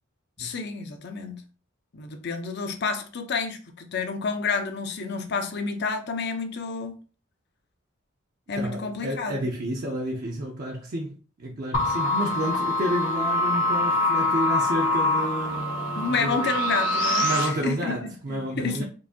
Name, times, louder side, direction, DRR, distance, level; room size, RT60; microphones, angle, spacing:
voice 1, 0.4-1.4 1.9-7.0 8.5-9.5 16.0-18.8, left 4 dB, 55° left, 0.7 m, -30 dB
voice 2, 8.6-16.5 17.2-18.8, equal, 45° right, 0.6 m, -30 dB
sound 1, 11.7-17.5, left 1 dB, 70° left, 1.5 m, -24 dB
4.6 x 2.6 x 2.7 m
head